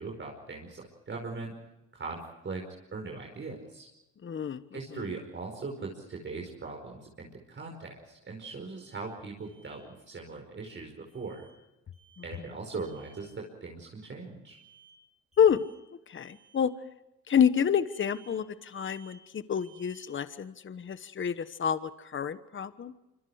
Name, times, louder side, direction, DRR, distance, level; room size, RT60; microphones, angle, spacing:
voice 1, 0.0-1.6 1.9-3.9 4.7-11.5 12.2-14.6, right 4 dB, 40° right, 1 dB, 5.2 m, -40 dB
voice 2, 4.2-5.0 15.4-15.7 16.1-16.7 17.3-22.9, left 8 dB, 40° left, 13 dB, 1.2 m, -28 dB
Alarm, 8.5-9.0 9.4-9.8 11.1-11.5 11.9-12.4 12.8-13.3 14.5-15.0 15.3-15.8 16.2-16.6 17.9-18.4 18.7-19.2 19.6-20.0, right 7 dB, 25° right, 7.8 m, -59 dB
26.5 x 25.5 x 4.9 m, 0.93 s
cardioid pair, 90°, 30 cm